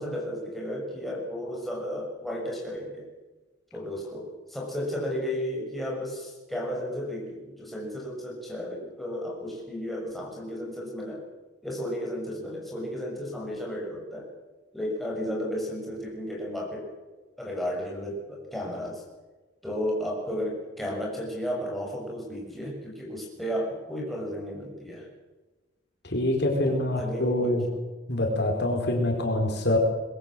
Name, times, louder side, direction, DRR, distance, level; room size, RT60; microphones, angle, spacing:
voice 1, 0.0-3.1 3.7-11.2 11.6-14.3 14.7-16.9 17.4-19.0 19.6-25.1 26.6-27.8, equal, ahead, -3 dB, 6.5 m, -33 dB
voice 2, 26.0-27.6 28.1-29.8, left 1 dB, 65° left, 1 dB, 4.6 m, -25 dB
24.5 x 22.0 x 7.7 m, 1.2 s
head